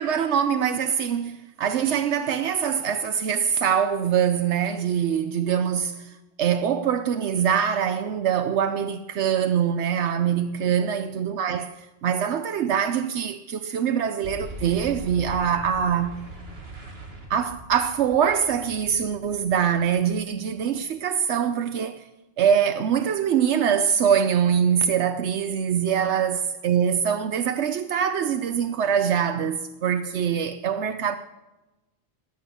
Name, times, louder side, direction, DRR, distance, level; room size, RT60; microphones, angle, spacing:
voice 1, 0.0-16.2 17.3-22.0 22.4-31.2, right 8 dB, 80° right, 1.0 m, -24 dB
Boom, 14.2-20.8, right 2 dB, 60° right, 2.2 m, -41 dB
21.0 x 9.9 x 6.1 m
omnidirectional pair, 1.1 m